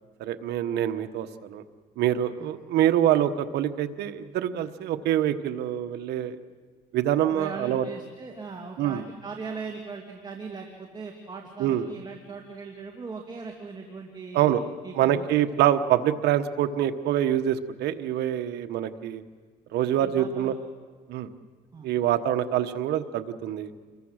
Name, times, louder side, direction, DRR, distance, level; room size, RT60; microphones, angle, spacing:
voice 1, 0.2-1.6 2.0-6.4 6.9-7.8 8.8-9.0 11.6-11.8 14.3-14.6 15.0-19.2 19.7-20.5 21.1-21.3 21.8-23.7, right 11 dB, 80° right, 8 dB, 1.3 m, -25 dB
voice 2, 7.3-15.5 20.0-20.6 21.7-21.9, right 4 dB, 25° right, 1 dB, 2.4 m, -39 dB
28.5 x 22.5 x 6.5 m, 1.5 s
cardioid pair, 110°, 17 cm